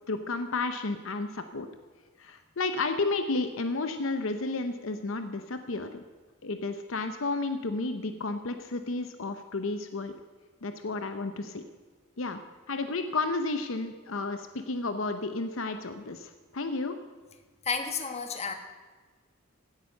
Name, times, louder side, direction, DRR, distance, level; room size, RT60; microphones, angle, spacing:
voice 1, 0.1-1.7 2.2-6.0 6.4-10.1 10.6-11.6 12.2-12.4 12.7-17.0, left 3 dB, 60° left, 8 dB, 0.7 m, -32 dB
voice 2, 17.6-18.5, left 5 dB, 30° left, 6 dB, 1.2 m, -31 dB
16.5 x 9.0 x 6.6 m, 1.4 s
head